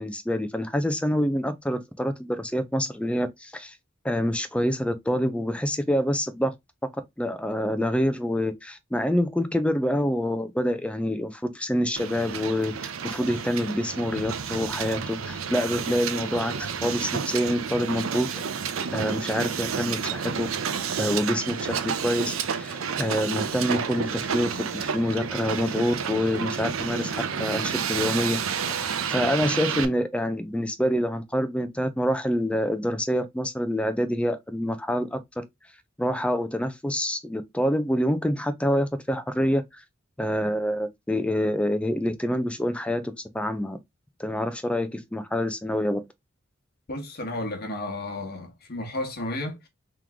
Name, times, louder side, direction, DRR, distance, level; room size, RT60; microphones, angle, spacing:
voice 1, 0.0-3.7 4.0-6.5 7.2-18.3 18.9-20.5 21.0-21.7 22.0-28.4 28.7-35.4 36.0-39.6 40.2-43.8 44.2-46.0, equal, 5° left, 0.5 m, -26 dB
Hiss, 12.0-29.8, right 6 dB, 85° right, 0.6 m, -30 dB
voice 2, 46.9-49.7, left 1 dB, 50° left, 1.2 m, -32 dB
3.7 x 3.1 x 3.5 m
head